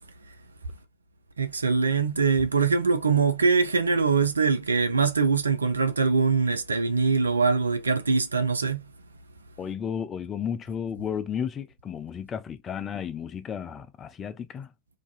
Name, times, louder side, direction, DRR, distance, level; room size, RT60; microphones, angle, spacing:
voice 1, 1.4-8.8, right 5 dB, 75° right, 0.4 m, -23 dB
voice 2, 9.6-14.7, left 7 dB, 25° left, 0.3 m, -33 dB
2.5 x 2.3 x 2.3 m
figure-of-eight pair, 90°, 0 cm